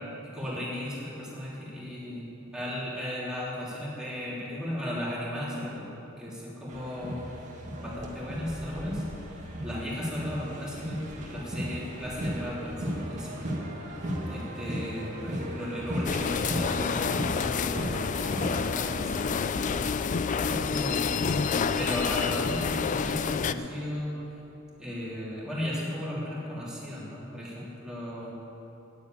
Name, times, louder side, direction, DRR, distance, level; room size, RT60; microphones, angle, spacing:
voice 1, 0.3-2.3 2.5-5.9 6.2-7.2 7.8-9.0 9.6-13.5 14.3-21.1 21.7-24.1 24.8-28.3, left 1 dB, 5° right, -7 dB, 3.3 m, -36 dB
sound 1, 6.7-18.7, equal, 40° right, 1.7 m, -36 dB
sound 2, 16.0-23.5, left 5 dB, 40° left, 0.4 m, -28 dB
9.8 x 9.5 x 9.0 m, 2.9 s
head